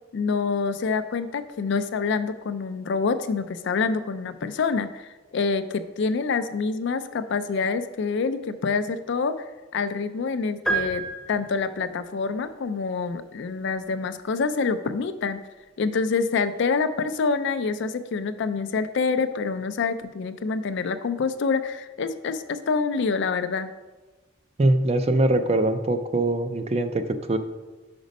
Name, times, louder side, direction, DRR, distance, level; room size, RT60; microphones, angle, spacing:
voice 1, 0.1-9.4 9.7-15.4 15.8-23.7, left 4 dB, 60° left, 11 dB, 0.4 m, -26 dB
sound 1, 10.7-12.0, right 3 dB, ahead, 0.7 m, -29 dB
voice 2, 24.6-27.4, right 2 dB, 30° right, 9 dB, 0.4 m, -22 dB
5.2 x 5.0 x 5.2 m, 1.2 s
head